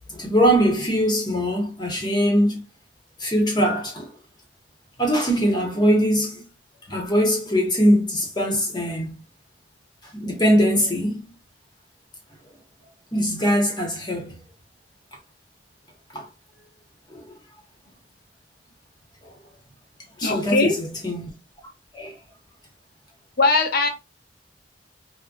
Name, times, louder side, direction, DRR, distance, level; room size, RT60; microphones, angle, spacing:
voice 1, 0.1-2.6 3.2-4.1 5.0-6.4 6.9-9.1 10.1-11.3 13.1-14.4 16.1-16.3 17.1-17.2 20.2-21.3 21.9-22.1, equal, 25° left, 0.9 m, -21 dB
voice 2, 20.2-20.8 23.4-23.9, left 3 dB, 55° left, 0.6 m, -20 dB
3.8 x 2.2 x 2.3 m
head